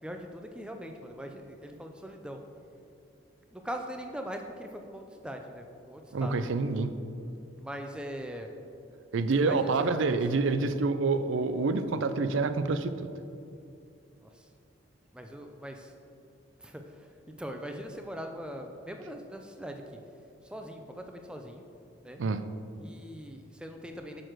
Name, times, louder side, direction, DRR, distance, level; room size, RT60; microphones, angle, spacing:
voice 1, 0.0-2.4 3.5-6.3 7.6-8.5 9.4-10.1 14.2-14.5 15.1-15.9 16.6-17.1 17.4-19.8 20.4-21.6 22.0-22.2 22.8-24.2, equal, 5° right, 4 dB, 0.4 m, -41 dB
voice 2, 6.1-7.0 9.1-13.1 22.2-22.4, right 3 dB, 75° right, 11 dB, 0.4 m, -27 dB
6.7 x 6.2 x 4.5 m, 2.6 s
head